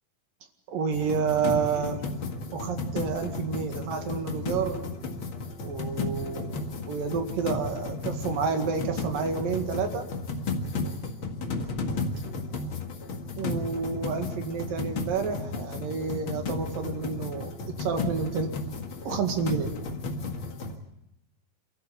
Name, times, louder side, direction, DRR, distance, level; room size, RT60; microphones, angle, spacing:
voice 1, 0.7-2.0 2.5-4.9 5.6-10.0 13.4-18.6 19.1-19.7, right 6 dB, 80° right, 5 dB, 3.7 m, -30 dB
sound 1, 0.9-20.8, left 3 dB, 45° left, 2.1 m, -33 dB
27.5 x 14.0 x 8.4 m, 0.88 s
omnidirectional pair, 4.0 m